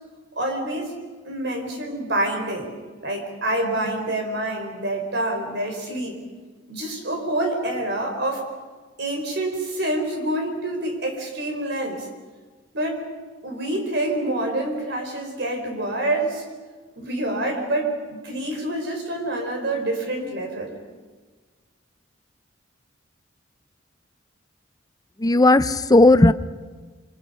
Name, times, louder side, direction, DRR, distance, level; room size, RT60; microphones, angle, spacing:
voice 1, 0.4-0.9 1.2-2.7 3.0-6.2 6.7-8.4 9.0-12.1 12.7-13.0 13.4-16.4 17.0-20.7, right 1 dB, 60° right, 3 dB, 4.7 m, -27 dB
voice 2, 25.2-26.3, left 2 dB, 20° left, 13 dB, 0.6 m, -14 dB
27.5 x 25.0 x 5.6 m, 1.4 s
head